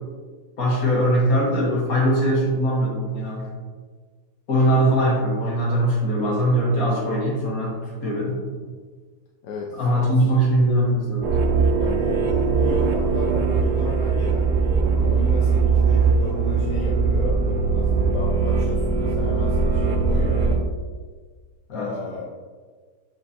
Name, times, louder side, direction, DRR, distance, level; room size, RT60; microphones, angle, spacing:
voice 1, 0.6-3.5 4.5-8.4 9.7-11.3 21.7-21.9, right 1 dB, 55° left, -5 dB, 1.7 m, -21 dB
voice 2, 9.4-10.4 11.8-17.4 17.7-20.6 21.7-22.3, left 4 dB, 75° left, -2 dB, 1.2 m, -34 dB
sound 1, 11.2-20.6, right 4 dB, 65° right, 0.8 m, -20 dB
7.7 x 4.4 x 2.8 m, 1.5 s
omnidirectional pair, 1.9 m